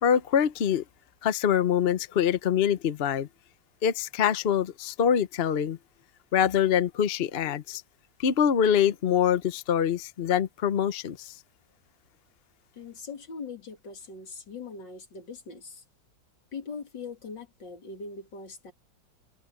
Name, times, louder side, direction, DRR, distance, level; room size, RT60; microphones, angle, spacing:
voice 1, 0.0-0.8 1.2-3.3 3.8-5.8 6.3-7.8 8.2-11.3, left 8 dB, 50° left, 0.7 m, -24 dB
voice 2, 12.7-15.8 16.5-18.7, left 4 dB, 70° left, 3.2 m, -41 dB
omnidirectional pair, 2.0 m